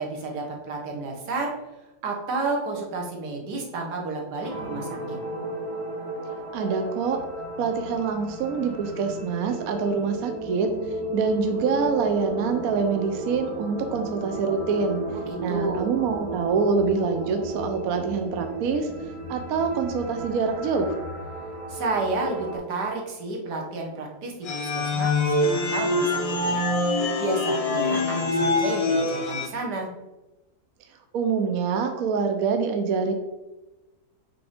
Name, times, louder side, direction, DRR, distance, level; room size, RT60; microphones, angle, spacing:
voice 1, 0.0-1.5 2.0-5.2 15.1-15.9 21.7-25.1 25.5-26.6 27.2-29.9, right 3 dB, 80° right, 1 dB, 1.8 m, -31 dB
sound 1, 4.4-22.6, right 2 dB, 20° right, 1.7 m, -34 dB
voice 2, 6.5-7.2 7.6-10.7 11.1-15.0 15.4-18.9 19.3-20.9 31.1-33.1, right 5 dB, 65° right, 6 dB, 1.0 m, -25 dB
sound 2, 24.4-29.5, left 2 dB, 55° left, 0.3 m, -24 dB
5.9 x 3.8 x 5.0 m, 1.1 s
omnidirectional pair, 1.7 m